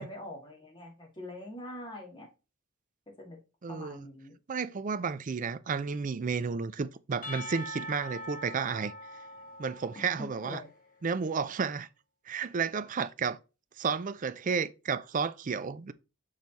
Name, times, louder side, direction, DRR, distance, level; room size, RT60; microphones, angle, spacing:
voice 1, 0.0-2.3 3.2-3.4 3.7-4.3 10.0-10.1 10.4-10.7, left 1 dB, 20° left, 2.1 m, -44 dB
voice 2, 3.6-4.1 4.5-8.9 9.6-10.6 11.0-11.9 12.3-13.4 13.8-15.9, right 5 dB, 35° right, 0.4 m, -32 dB
Percussion / Church bell, 7.2-10.9, left 1 dB, 40° left, 1.6 m, -43 dB
6.4 x 3.9 x 4.1 m
head